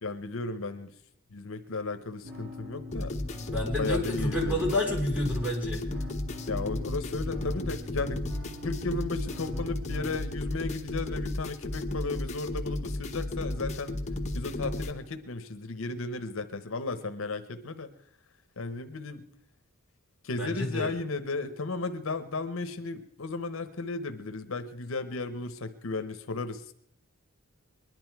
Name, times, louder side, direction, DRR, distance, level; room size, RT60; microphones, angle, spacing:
voice 1, 0.0-0.9 1.3-3.2 3.8-4.8 6.5-8.2 8.6-14.0 14.3-17.9 18.6-19.3 20.2-26.7, left 3 dB, 70° left, 9 dB, 0.8 m, -34 dB
sound 1, 2.2-10.2, left 1 dB, 85° right, 6.0 m, -43 dB
sound 2, 2.9-14.9, left 1 dB, 35° left, 1.0 m, -34 dB
voice 2, 3.4-5.8 20.4-20.9, left 1 dB, 5° right, -1 dB, 3.2 m, -30 dB
21.0 x 11.0 x 4.6 m, 0.69 s
head